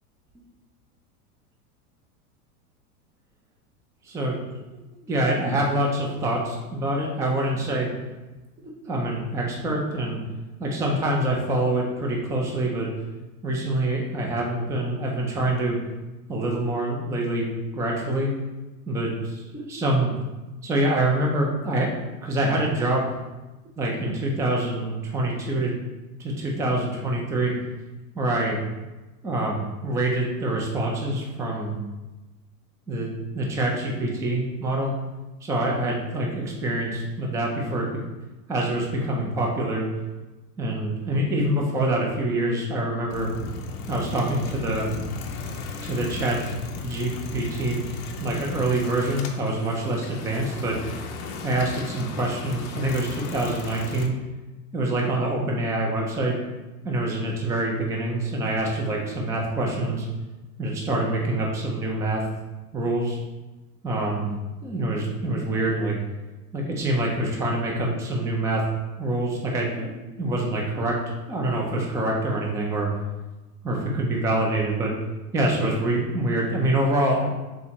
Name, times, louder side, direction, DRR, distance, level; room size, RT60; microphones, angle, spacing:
voice 1, 4.1-4.4 5.0-7.9 8.6-10.2 10.6-12.9 13.4-15.8 16.3-17.5 17.7-18.3 18.9-20.1 20.6-21.9 22.2-23.1 23.8-25.7 26.2-27.5 28.1-28.6 29.2-31.8 32.9-34.9 35.4-37.9 38.5-39.9 40.6-43.3 43.9-44.9 45.8-46.4 46.8-47.8 48.2-50.8 51.4-54.2 54.7-56.4 56.8-60.0 60.6-62.2 62.7-63.2 63.8-66.0 66.5-68.6 69.0-72.9 73.6-74.9 75.3-77.3, right 1 dB, 5° right, -1 dB, 0.4 m, -25 dB
sound 1, 43.1-54.1, left 4 dB, 40° left, 0.6 m, -35 dB
3.7 x 2.8 x 4.3 m, 1.1 s
hypercardioid pair, 120°, 45 cm